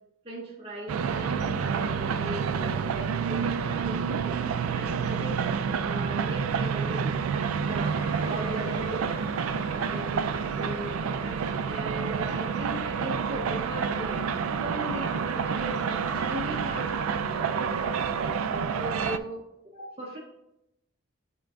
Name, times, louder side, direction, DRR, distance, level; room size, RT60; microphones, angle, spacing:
voice 1, 0.2-7.2 7.6-9.2 9.7-14.2 14.6-20.2, right 1 dB, 30° right, -4 dB, 0.7 m, -38 dB
sound 1, 0.9-19.2, right 6 dB, 90° right, 0.3 m, -29 dB
sound 2, 7.3-18.1, equal, 50° left, 1.6 m, -44 dB
11.0 x 3.8 x 2.3 m, 0.88 s
head